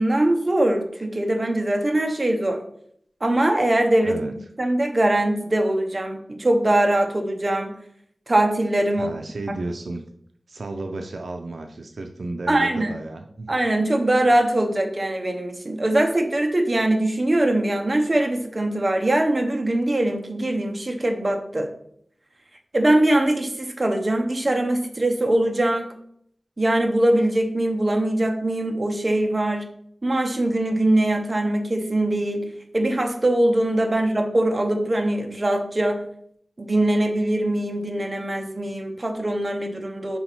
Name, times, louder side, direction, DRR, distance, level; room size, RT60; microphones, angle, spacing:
voice 1, 0.0-2.6 3.2-7.7 8.3-9.2 12.5-13.0 13.5-21.7 22.7-25.9 26.6-29.7 30.0-32.5 32.7-36.0 36.6-40.2, right 1 dB, 35° right, 4 dB, 0.8 m, -22 dB
voice 2, 9.0-10.0 10.5-13.5, right 2 dB, 80° right, 5 dB, 0.5 m, -33 dB
5.5 x 4.0 x 4.5 m, 0.68 s
wide cardioid pair, 75°, 0 cm